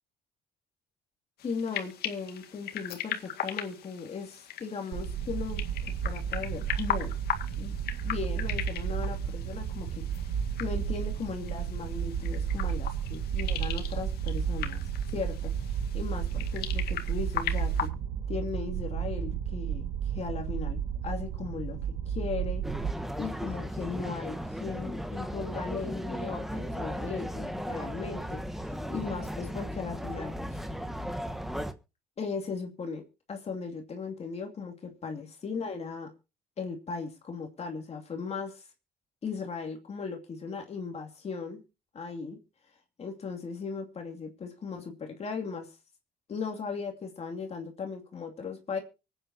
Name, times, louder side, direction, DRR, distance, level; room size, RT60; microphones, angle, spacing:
sound 1, 1.4-17.9, left 10 dB, 70° left, 2.0 m, -39 dB
voice 1, 1.4-5.6 6.0-7.1 7.6-7.8 8.0-14.8 15.1-17.9 18.3-21.8 22.1-22.6 23.2-30.6 32.2-36.1 36.6-38.7 39.2-41.6 41.9-42.4 43.0-45.7 46.3-48.8, left 5 dB, 40° left, 3 dB, 2.6 m, -37 dB
sound 2, 4.9-22.9, right 8 dB, 80° right, 1.7 m, -32 dB
sound 3, 22.6-31.7, equal, ahead, 1.2 m, -36 dB
24.5 x 9.2 x 2.8 m, 0.29 s
cardioid pair, 110°, 17 cm